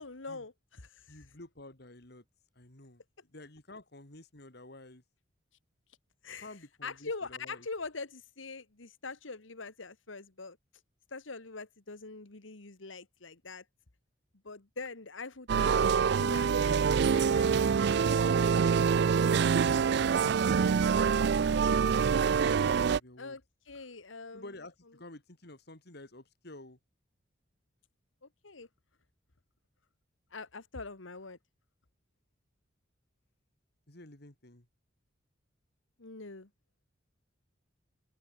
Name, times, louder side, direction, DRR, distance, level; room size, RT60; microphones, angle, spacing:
voice 1, 0.0-1.2 6.2-6.5 6.8-10.6 11.1-13.6 14.5-15.9 16.2-17.5 23.2-23.4 23.7-24.4 28.4-28.7 30.3-31.4 36.0-36.5, left 4 dB, 90° left, 1.8 m, -43 dB
voice 2, 1.1-2.2 2.5-5.0 6.4-7.7 21.1-21.9 22.7-23.4 24.3-26.8 33.9-34.7, left 2 dB, 55° left, 2.9 m, -51 dB
sound 1, 15.5-23.0, right 6 dB, 60° right, 0.4 m, -25 dB
head